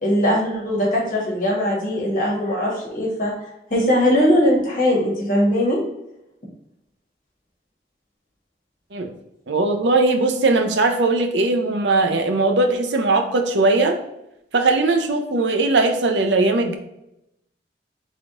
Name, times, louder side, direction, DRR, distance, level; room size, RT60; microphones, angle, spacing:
voice 1, 0.0-3.3 3.7-5.8, equal, 45° left, -4 dB, 1.4 m, -20 dB
voice 2, 9.5-14.0 14.5-16.8, right 3 dB, 85° right, 5 dB, 0.6 m, -19 dB
3.6 x 3.4 x 3.8 m, 0.86 s
head